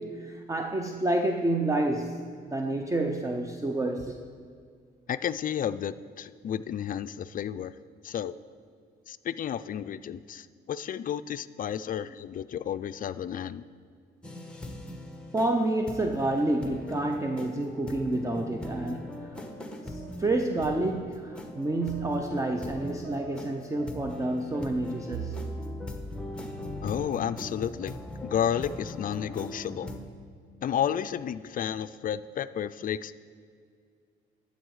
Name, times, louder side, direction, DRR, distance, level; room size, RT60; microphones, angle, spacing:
voice 1, 0.0-4.2 12.1-12.2 15.3-19.4 19.8-25.4, right 2 dB, 15° right, 5 dB, 0.6 m, -29 dB
voice 2, 5.1-7.7 8.0-8.4 9.1-13.6 26.8-27.9 28.2-30.0 30.6-33.1, left 9 dB, 45° left, 13 dB, 0.4 m, -32 dB
sound 1, 14.2-30.0, left 1 dB, 5° left, 1.2 m, -40 dB
Bowed string instrument, 25.1-29.5, right 4 dB, 65° right, 0.7 m, -43 dB
12.0 x 8.1 x 4.8 m, 2.2 s
cardioid pair, 90°, 20 cm